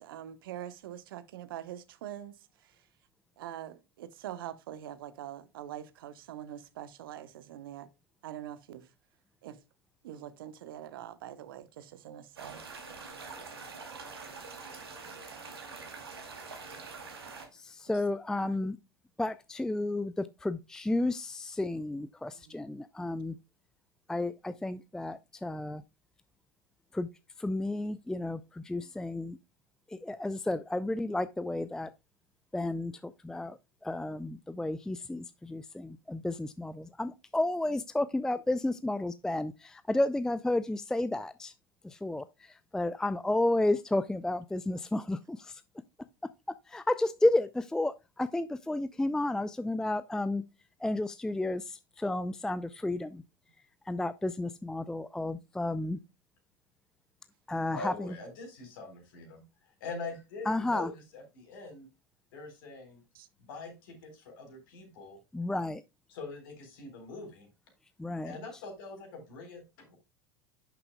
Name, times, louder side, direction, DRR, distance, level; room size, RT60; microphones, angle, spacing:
voice 1, 0.0-2.8 3.4-7.9 8.2-8.9 9.4-9.6 10.0-12.6 18.4-18.6 22.3-22.6 63.1-63.3, right 11 dB, 65° right, 1.0 m, -44 dB
sound 1, 12.4-17.5, right 4 dB, 80° right, 2.3 m, -45 dB
voice 2, 17.5-18.8 19.2-23.4 24.1-25.8 26.9-27.1 27.4-29.4 29.9-31.9 32.5-41.5 41.8-45.6 46.7-50.4 50.8-53.2 53.9-56.0 57.5-58.2 60.5-60.9 65.3-65.8 68.0-68.4, left 2 dB, 5° left, 0.4 m, -32 dB
voice 3, 57.7-59.4 59.8-60.9 61.1-61.9 62.3-63.0 63.4-65.2 66.1-67.5 68.2-70.0, left 3 dB, 60° left, 3.9 m, -43 dB
11.0 x 6.8 x 2.2 m
figure-of-eight pair, 80°, 13 cm